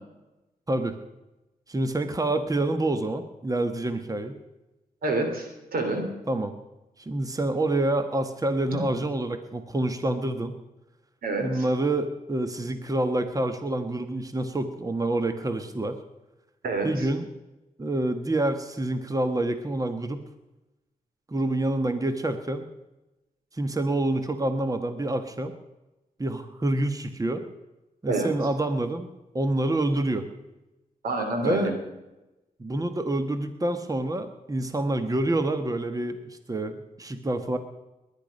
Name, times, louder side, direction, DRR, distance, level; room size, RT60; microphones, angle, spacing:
voice 1, 1.7-4.4 6.3-6.5 7.0-10.6 11.4-16.0 16.8-17.3 17.8-20.3 21.3-22.7 23.5-25.5 26.2-27.4 28.0-29.1 29.3-30.3 31.4-31.7 32.6-37.6, right 1 dB, 25° right, 9 dB, 1.3 m, -27 dB
voice 2, 5.0-6.1 8.7-8.8 11.2-11.6 16.6-17.1 28.1-28.3 31.0-31.7, right 2 dB, 85° right, 5 dB, 3.2 m, -27 dB
20.0 x 10.5 x 5.3 m, 1.0 s
cardioid pair, 70°, 15 cm